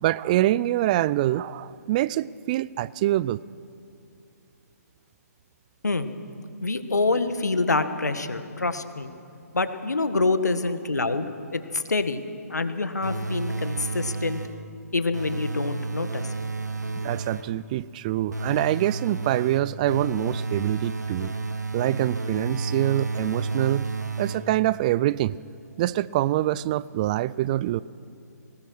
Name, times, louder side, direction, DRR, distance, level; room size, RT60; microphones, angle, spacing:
voice 1, 0.0-3.4 17.0-21.3 21.7-23.9 24.2-25.4 25.8-27.8, right 14 dB, 30° right, 19 dB, 0.4 m, -25 dB
voice 2, 6.6-9.1 9.5-12.2 12.5-14.4 14.9-16.2, left 3 dB, 85° left, 9 dB, 1.7 m, -26 dB
sound 1, 13.0-14.7 15.1-17.6 18.3-24.7, right 3 dB, 90° right, 1.5 m, -31 dB
20.5 x 19.5 x 6.4 m, 2.7 s
figure-of-eight pair, 140°, 9 cm